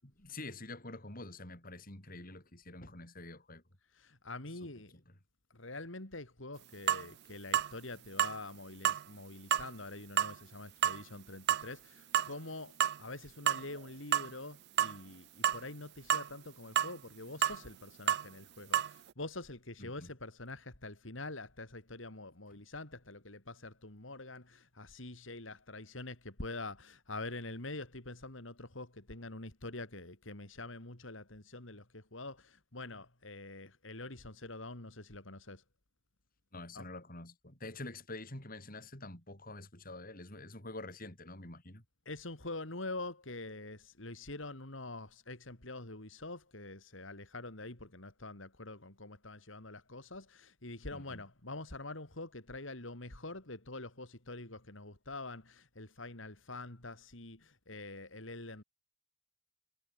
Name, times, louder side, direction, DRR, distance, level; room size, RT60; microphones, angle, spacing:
voice 1, 0.0-3.6 4.6-5.0 19.8-20.1 36.5-41.8 50.9-51.2, left 2 dB, 45° left, 6.9 m, -47 dB
voice 2, 3.9-4.9 5.5-35.6 36.7-36.8 42.1-58.6, left 2 dB, 75° left, 3.7 m, -45 dB
sound 1, 6.9-7.1 7.5-7.7 8.2-8.4 8.9-9.0 9.5-9.7 10.2-10.4 10.8-11.0 11.5-11.7 12.1-12.3 12.8-13.0 13.5-13.8 14.1-14.3 14.8-15.0 15.4-15.6 16.1-16.3 16.8-16.9 17.4-17.6 18.1-18.2 18.7-18.9, right 10 dB, 60° right, 0.4 m, -29 dB
head